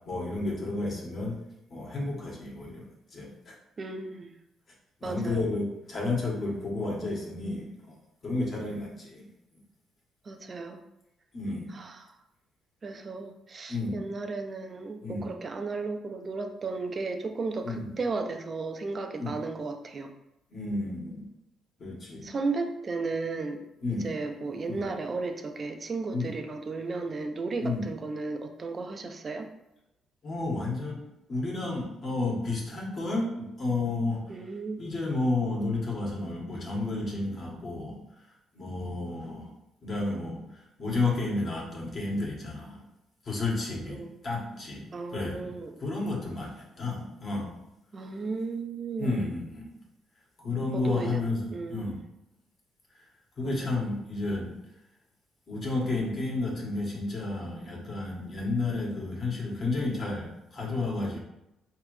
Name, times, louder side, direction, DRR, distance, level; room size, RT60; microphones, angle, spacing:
voice 1, 0.0-1.4 1.7-3.5 5.0-8.0 8.2-9.3 11.3-11.7 13.7-14.1 15.0-15.2 17.6-17.9 19.2-19.4 20.5-21.3 21.8-22.3 23.8-24.1 24.7-24.9 26.1-26.3 27.6-27.8 30.2-31.0 31.3-34.3 34.8-38.0 38.5-39.5 39.8-42.8 43.2-47.6 49.0-49.6 50.4-52.0 52.9-53.0 53.4-54.7 55.5-61.2, left 2 dB, 40° left, -2 dB, 1.6 m, -31 dB
voice 2, 3.8-4.3 5.0-5.4 10.2-10.8 11.7-12.1 12.8-20.1 22.2-23.7 24.0-29.5 34.3-34.8 43.9-44.1 44.9-45.7 47.9-49.3 50.7-51.2 51.5-52.0 53.4-54.1, right 3 dB, 35° right, 6 dB, 0.6 m, -34 dB
4.9 x 3.3 x 3.2 m, 0.90 s
cardioid pair, 110°, 0 cm